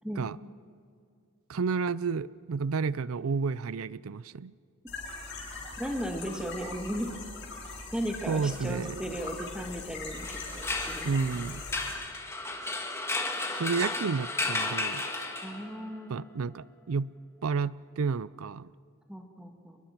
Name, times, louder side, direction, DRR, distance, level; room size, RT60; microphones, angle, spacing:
voice 1, 1.5-4.5 8.3-9.0 11.0-11.6 13.5-15.0 16.1-17.1 17.4-18.7, right 5 dB, 75° right, 19 dB, 0.5 m, -31 dB
sound 1, 4.9-11.9, left 3 dB, 50° left, 7.9 m, -41 dB
voice 2, 5.8-7.1 7.9-11.4 15.4-16.3 19.1-19.8, equal, 5° right, 3 dB, 1.9 m, -36 dB
sound 2, 10.1-15.8, left 2 dB, 10° left, 2.1 m, -33 dB
29.5 x 22.0 x 6.0 m, 2.4 s
head